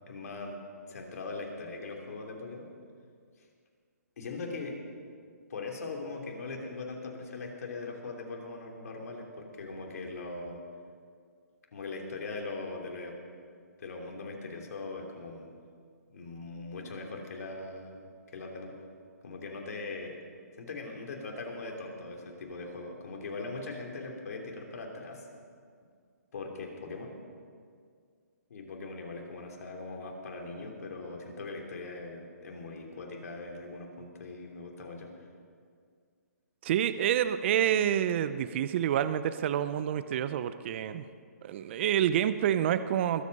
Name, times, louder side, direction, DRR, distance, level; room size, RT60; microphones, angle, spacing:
voice 1, 0.1-0.6 0.9-2.7 4.2-4.8 5.5-10.6 11.7-13.1 13.8-15.5 16.1-18.7 19.2-20.1 20.6-25.3 26.3-27.1 28.5-35.1, left 3 dB, 65° left, 1 dB, 2.9 m, -40 dB
voice 2, 36.6-41.1 41.4-43.2, right 10 dB, 40° right, 13 dB, 0.5 m, -28 dB
22.0 x 8.3 x 5.3 m, 2.1 s
hypercardioid pair, 150°, 9 cm